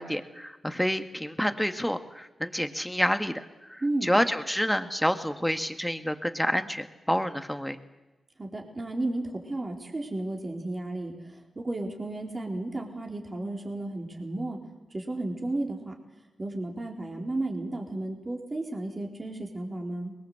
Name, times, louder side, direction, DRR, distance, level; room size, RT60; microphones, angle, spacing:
voice 1, 0.0-7.8, equal, 5° left, 8 dB, 1.9 m, -28 dB
voice 2, 8.4-14.6 14.9-16.0 16.4-20.1, right 2 dB, 35° right, 2 dB, 4.2 m, -33 dB
23.0 x 21.0 x 8.0 m, 1.2 s
cardioid pair, 60°, 0 cm